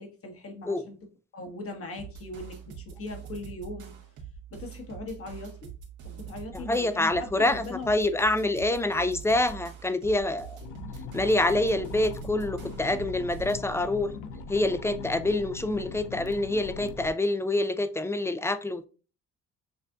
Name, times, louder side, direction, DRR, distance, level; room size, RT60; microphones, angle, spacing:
voice 1, 0.0-3.9 4.5-5.7 6.0-7.9, left 2 dB, 50° left, 1.5 m, -40 dB
sound 1, 2.0-13.7, right 8 dB, 80° right, 1.5 m, -44 dB
voice 2, 6.5-10.6 11.1-14.1 14.5-18.9, left 2 dB, 10° left, 0.4 m, -26 dB
sound 2, 10.6-17.1, left 4 dB, 90° left, 0.6 m, -40 dB
6.7 x 2.5 x 2.3 m
cardioid pair, 90°, 30 cm